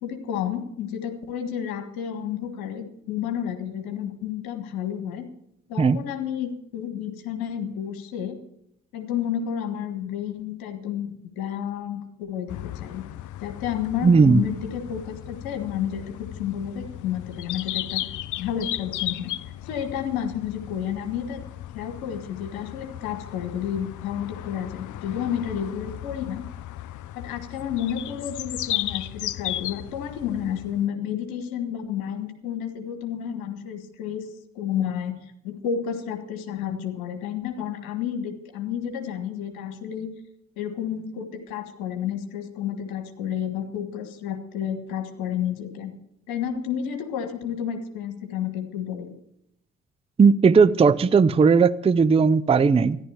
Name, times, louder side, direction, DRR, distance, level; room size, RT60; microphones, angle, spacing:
voice 1, 0.0-5.3 5.7-8.4 8.9-13.0 13.4-18.0 18.4-19.4 19.6-21.4 21.7-26.5 27.1-34.3 34.6-35.2 35.4-40.1 40.6-45.9 46.3-49.1, left 9 dB, 70° left, 1.6 m, -31 dB
sound 1, 12.5-30.9, left 14 dB, 50° left, 0.6 m, -36 dB
voice 2, 14.0-14.4 50.2-53.0, right 5 dB, 15° right, 0.5 m, -17 dB
14.0 x 11.0 x 7.0 m
figure-of-eight pair, 40°, 38 cm